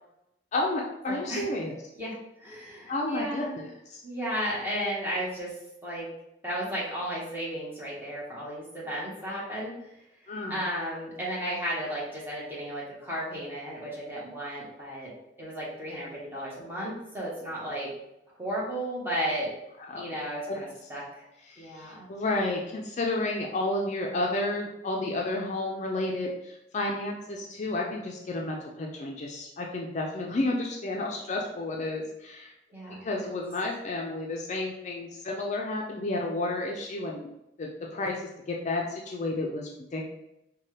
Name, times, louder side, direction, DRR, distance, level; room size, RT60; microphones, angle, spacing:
voice 1, 0.5-1.8 2.9-4.0 10.3-10.6 19.9-20.0 20.5-20.6 21.5-32.5 33.0-37.3 37.6-38.2 38.5-40.0, left 2 dB, 40° left, 0 dB, 0.4 m, -31 dB
voice 2, 1.1-1.4 2.0-3.6 4.0-5.5 5.8-6.1 6.4-9.9 10.5-15.1 15.4-17.9 18.4-19.5 19.9-21.3 21.6-22.0 32.7-33.2, equal, 10° right, -6 dB, 1.1 m, -34 dB
4.2 x 2.2 x 3.1 m, 0.85 s
head